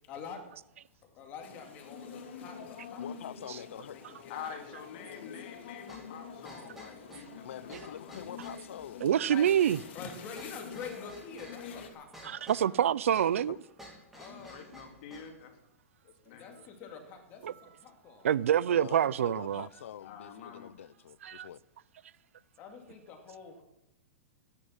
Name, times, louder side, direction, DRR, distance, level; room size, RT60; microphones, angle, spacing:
voice 1, 0.1-0.4 1.0-3.0 3.5-4.8 9.2-9.5 9.9-12.8 14.2-14.7 16.3-18.3 22.6-23.6, left 6 dB, 25° left, 2.4 m, -47 dB
sound 1, 1.4-11.9, left 6 dB, 55° left, 2.9 m, -47 dB
voice 2, 3.0-4.0 7.4-9.0 13.5-13.6 18.7-21.6, left 10 dB, 75° left, 0.6 m, -45 dB
voice 3, 4.3-8.2 14.3-15.6 16.0-16.6 20.0-20.7, left 7 dB, 40° left, 2.8 m, -47 dB
sound 2, 5.9-15.4, equal, 5° right, 2.9 m, -53 dB
voice 4, 9.0-9.8 12.2-13.6 17.4-17.5 18.2-19.7 21.2-21.5, right 10 dB, 90° right, 0.5 m, -26 dB
16.5 x 10.0 x 7.4 m
supercardioid pair, 170°, 7 cm